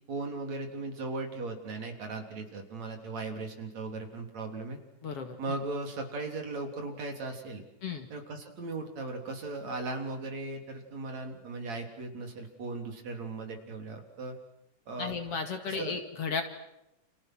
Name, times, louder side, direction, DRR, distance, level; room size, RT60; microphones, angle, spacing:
voice 1, 0.1-4.8 5.4-7.6 8.1-14.4 14.9-15.1 15.6-16.0, right 3 dB, 55° right, 4 dB, 4.7 m, -37 dB
voice 2, 5.0-5.4 7.8-8.1 15.0-16.4, left 5 dB, 50° left, 6 dB, 2.9 m, -34 dB
30.0 x 29.0 x 6.3 m, 0.86 s
omnidirectional pair, 3.7 m